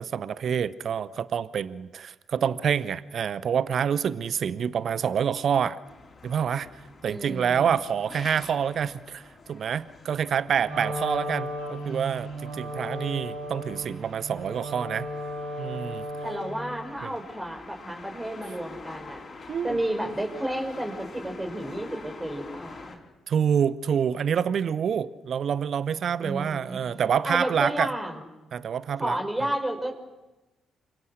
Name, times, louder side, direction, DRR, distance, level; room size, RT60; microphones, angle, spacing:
voice 1, 0.0-5.8 6.2-6.7 7.0-15.1 15.6-16.0 17.0-17.1 19.5-19.8 23.3-27.9 28.5-29.2, right 8 dB, 50° right, 18 dB, 0.9 m, -27 dB
sound 1, 5.8-23.0, left 4 dB, 40° left, 5.3 m, -47 dB
voice 2, 7.1-7.8 16.2-19.2 19.6-23.0 26.2-26.8 27.2-28.2 29.0-29.9, right 1 dB, 15° right, 4 dB, 5.4 m, -31 dB
Wind instrument woodwind instrument, 10.6-16.6, equal, 65° right, 5.3 m, -35 dB
30.0 x 26.0 x 6.5 m, 1.1 s
figure-of-eight pair, 40°, 0 cm